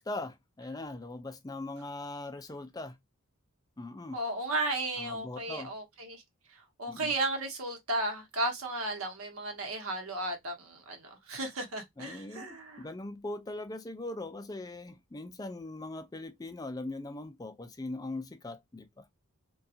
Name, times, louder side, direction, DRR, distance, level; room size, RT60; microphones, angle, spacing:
voice 1, 0.0-3.0 3.8-4.2 5.0-5.7 6.9-7.1 12.0-19.0, left 2 dB, 15° left, 0.3 m, -40 dB
voice 2, 4.1-6.2 6.5-12.9, right 2 dB, 80° right, 0.9 m, -34 dB
2.7 x 2.3 x 2.4 m
head